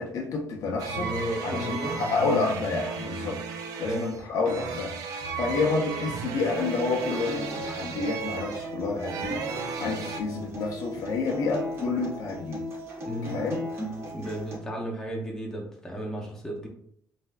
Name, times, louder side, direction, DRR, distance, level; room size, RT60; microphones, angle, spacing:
voice 1, 0.0-1.1 1.4-12.6 13.2-13.6, left 4 dB, 70° left, 0 dB, 0.6 m, -29 dB
sound 1, 0.8-10.2, right 6 dB, 85° right, 0.3 m, -35 dB
voice 2, 0.9-2.4 3.8-4.0 13.1-13.4 14.1-16.7, equal, 10° left, -2 dB, 0.6 m, -34 dB
Acoustic guitar, 6.5-14.6, left 1 dB, 45° right, 1.1 m, -37 dB
3.2 x 2.5 x 2.2 m, 0.67 s
cardioid pair, 130°, 6 cm